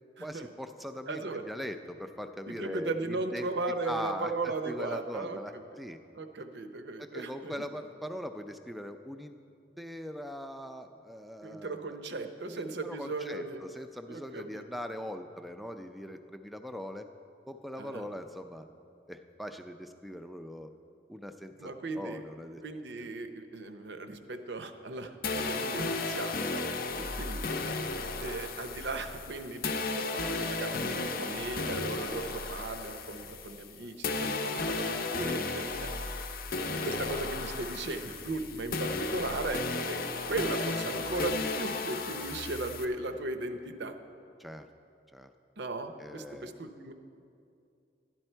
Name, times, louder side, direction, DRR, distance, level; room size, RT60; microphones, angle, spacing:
voice 1, 0.2-3.5 3.8-6.0 7.0-9.4 9.8-12.0 12.5-17.1 17.5-18.7 19.1-20.7 21.1-22.6 27.0-27.1 34.5-34.6 44.4-44.7 45.1-45.3 46.0-46.5, equal, ahead, 7 dB, 0.4 m, -41 dB
voice 2, 1.1-1.4 2.5-5.6 6.1-7.7 11.4-13.7 14.1-14.7 17.8-18.1 21.6-22.2 22.6-26.6 27.2-27.4 28.2-35.9 36.8-39.6 39.9-40.0 40.3-44.0 45.6-46.9, right 2 dB, 75° right, 8 dB, 0.7 m, -37 dB
sound 1, 25.2-33.7 34.0-42.8, left 3 dB, 50° left, 0.6 m, -34 dB
12.0 x 11.0 x 4.5 m, 2.5 s
head